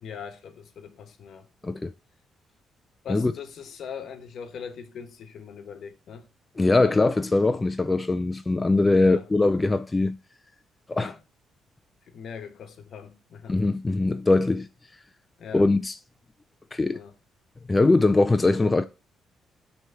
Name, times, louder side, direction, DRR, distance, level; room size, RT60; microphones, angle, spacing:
voice 1, 0.0-1.5 3.0-6.3 6.5-7.0 8.7-9.3 10.9-11.2 12.1-13.6 15.4-15.7 16.9-17.1, left 7 dB, 65° left, 1.0 m, -41 dB
voice 2, 6.6-10.2 10.9-11.1 13.5-14.7 15.5-15.9 16.7-17.0 17.7-18.9, left 2 dB, 20° left, 0.4 m, -21 dB
7.9 x 3.2 x 4.4 m
cardioid pair, 90°, 0 cm